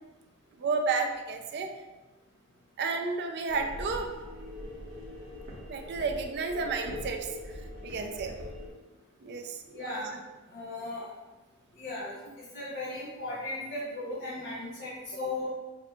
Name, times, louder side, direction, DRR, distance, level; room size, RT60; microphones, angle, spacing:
voice 1, 0.6-1.7 2.8-4.1 5.7-7.3 7.8-8.3 9.2-10.1 15.2-15.3, right 4 dB, 50° right, 4 dB, 0.4 m, -32 dB
sound 1, 3.5-8.7, left 1 dB, 70° right, 1.2 m, -42 dB
voice 2, 9.7-10.1 10.5-11.1 11.7-15.5, left 2 dB, 45° left, -7 dB, 0.8 m, -37 dB
6.6 x 2.7 x 2.4 m, 1.2 s
head